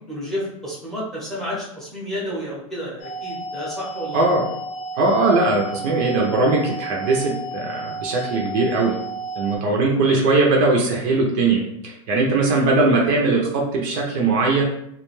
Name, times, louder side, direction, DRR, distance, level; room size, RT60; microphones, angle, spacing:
voice 1, 0.1-4.2 10.0-10.2 12.5-12.7, equal, ahead, -6 dB, 0.7 m, -31 dB
sound 1, 3.0-9.6, right 1 dB, 40° left, 0.5 m, -32 dB
voice 2, 4.1-4.4 5.0-9.0 9.4-14.6, right 3 dB, 45° right, -1 dB, 0.5 m, -20 dB
2.3 x 2.2 x 3.0 m, 0.75 s
supercardioid pair, 140°, 18 cm